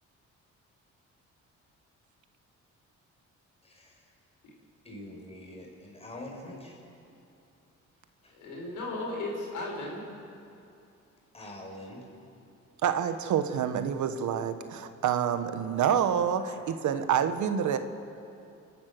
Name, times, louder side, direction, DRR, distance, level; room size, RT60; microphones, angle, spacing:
voice 1, 3.6-4.0 4.8-6.8 8.2-8.3 11.3-12.0, left 1 dB, 20° left, -1 dB, 6.1 m, -44 dB
voice 2, 8.3-10.0, left 2 dB, 80° left, -2 dB, 6.0 m, -35 dB
voice 3, 12.8-17.8, right 8 dB, 75° right, 9 dB, 1.3 m, -27 dB
29.5 x 12.0 x 7.7 m, 2.7 s
cardioid pair, 90°, 30 cm